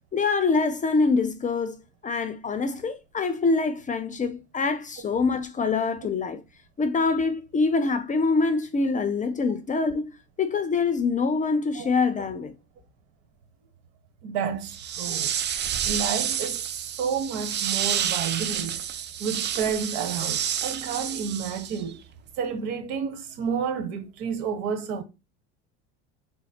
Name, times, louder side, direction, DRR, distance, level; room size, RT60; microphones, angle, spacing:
voice 1, 0.1-6.4 6.8-10.1 10.4-12.5, left 4 dB, 20° left, 0.6 m, -25 dB
voice 2, 14.2-15.3 15.8-18.8 19.2-22.0 22.4-25.0, right 6 dB, 70° right, 1.4 m, -30 dB
sound 1, 14.7-21.9, right 9 dB, 30° right, 0.5 m, -29 dB
4.0 x 2.1 x 4.2 m
supercardioid pair, 105°, 35 cm